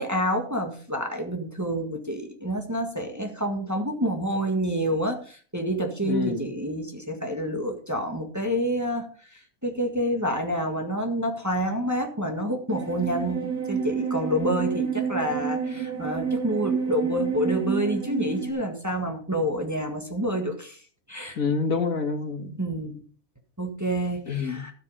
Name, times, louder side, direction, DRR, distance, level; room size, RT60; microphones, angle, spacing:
voice 1, 0.0-9.1 9.3-20.8 21.1-21.4 22.6-23.0 23.6-24.7, equal, 10° right, 2 dB, 1.7 m, -28 dB
voice 2, 6.0-6.5 21.4-22.6 24.3-24.6, left 5 dB, 65° left, 6 dB, 2.0 m, -27 dB
sound 1, 12.7-18.5, right 6 dB, 65° right, 2.9 m, -29 dB
13.0 x 8.3 x 5.0 m, 0.43 s
omnidirectional pair, 1.6 m